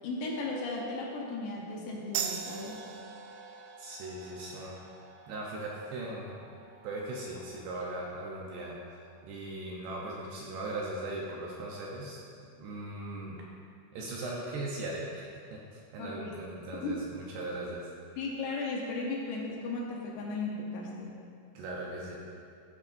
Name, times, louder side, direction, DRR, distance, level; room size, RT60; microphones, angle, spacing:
voice 1, 0.0-2.8 16.0-16.3 16.8-17.0 18.2-21.2, left 3 dB, 75° left, -2 dB, 2.9 m, -36 dB
sound 1, 2.2-9.2, right 7 dB, 90° right, 2.4 m, -43 dB
voice 2, 3.8-4.8 5.3-6.5 6.8-8.8 9.2-13.4 13.9-17.9 21.5-22.2, right 2 dB, 75° right, -3 dB, 2.7 m, -39 dB
14.5 x 8.7 x 2.7 m, 2.3 s
omnidirectional pair, 5.5 m